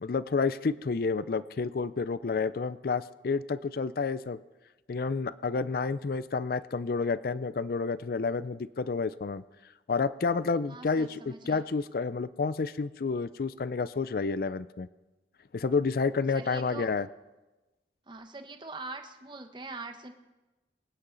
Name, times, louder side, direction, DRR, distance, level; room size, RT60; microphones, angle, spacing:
voice 1, 0.0-4.4 4.9-9.4 9.9-14.9 15.5-17.1, left 4 dB, 55° left, 16 dB, 0.4 m, -30 dB
voice 2, 10.7-11.6 16.3-16.9 18.1-20.1, right 3 dB, 25° right, 6 dB, 1.0 m, -43 dB
24.5 x 9.8 x 3.9 m, 1.1 s
head